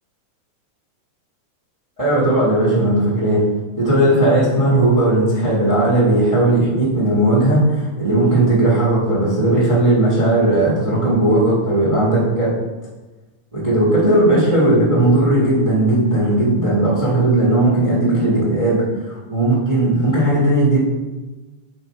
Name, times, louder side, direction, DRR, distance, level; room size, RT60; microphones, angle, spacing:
voice 1, 2.0-3.4 3.7-12.5 13.5-20.8, right 1 dB, 55° right, -6 dB, 0.3 m, -16 dB
5.7 x 4.0 x 4.5 m, 1.2 s
omnidirectional pair, 3.5 m